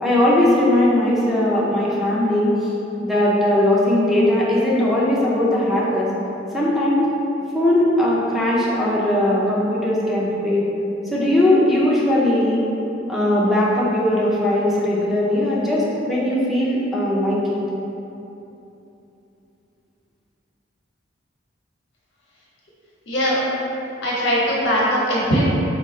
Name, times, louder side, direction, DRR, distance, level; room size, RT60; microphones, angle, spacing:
voice 1, 0.0-2.5 3.0-6.1 6.5-7.1 7.5-10.7 11.1-12.6 13.1-17.4, left 1 dB, ahead, -7 dB, 0.5 m, -19 dB
voice 2, 23.0-23.4 24.0-25.5, equal, 80° left, -5 dB, 0.9 m, -20 dB
3.6 x 2.3 x 4.1 m, 3.0 s
head